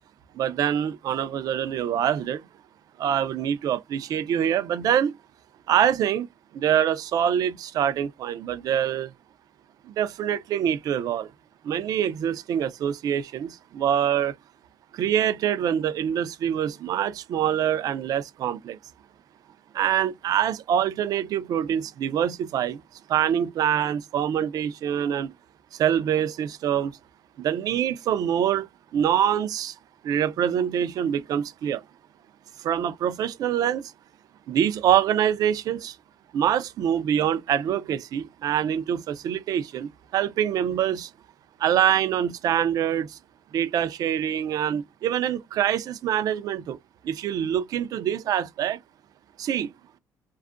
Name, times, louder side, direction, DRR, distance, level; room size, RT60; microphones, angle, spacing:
voice 1, 0.3-2.5 3.0-5.2 5.7-6.3 6.5-9.1 9.8-11.3 11.6-14.3 14.9-18.8 19.7-22.8 23.1-25.3 25.7-27.0 27.4-29.7 30.0-31.8 32.6-33.9 34.5-36.0 36.3-41.1 41.6-43.2 43.5-46.8 47.0-48.8 49.4-49.7, right 9 dB, 60° right, 0.4 m, -25 dB
2.5 x 2.3 x 2.4 m
cardioid pair, 120°, 7 cm